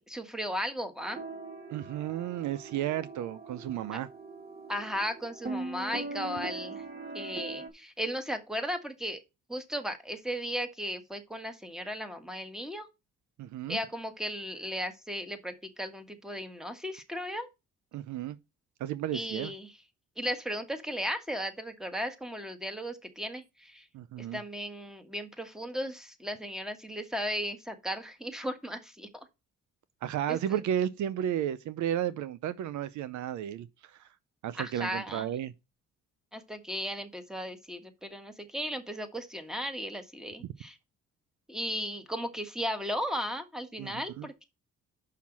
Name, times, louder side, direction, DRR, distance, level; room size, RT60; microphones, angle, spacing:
voice 1, 0.1-1.2 3.9-4.0 4.7-6.8 7.1-9.2 9.5-12.9 13.7-17.5 19.1-19.7 20.2-23.9 24.2-29.3 30.3-30.6 34.5-35.3 36.3-40.8 41.5-44.4, equal, ahead, 1.6 m, -36 dB
sound 1, 1.0-7.7, right 3 dB, 30° right, 1.8 m, -41 dB
voice 2, 1.7-4.1 13.4-13.8 17.9-18.4 18.8-19.5 23.9-24.4 30.0-34.1 34.4-35.5 43.8-44.3, right 10 dB, 70° right, 0.6 m, -33 dB
5.8 x 5.7 x 6.1 m
cardioid pair, 90°, 30 cm